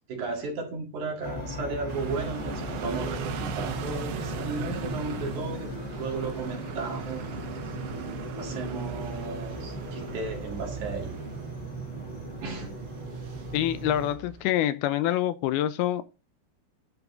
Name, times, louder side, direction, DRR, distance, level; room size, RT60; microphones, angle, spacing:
voice 1, 0.1-5.7 6.0-7.4 8.1-11.2 12.4-12.7, right 4 dB, 55° right, 3.0 m, -35 dB
sound 1, 1.2-14.1, equal, 40° left, 4.7 m, -37 dB
sound 2, 1.9-14.4, right 9 dB, 80° right, 2.9 m, -40 dB
voice 2, 13.5-16.0, left 12 dB, 85° left, 2.5 m, -26 dB
10.5 x 5.2 x 3.7 m
omnidirectional pair, 4.6 m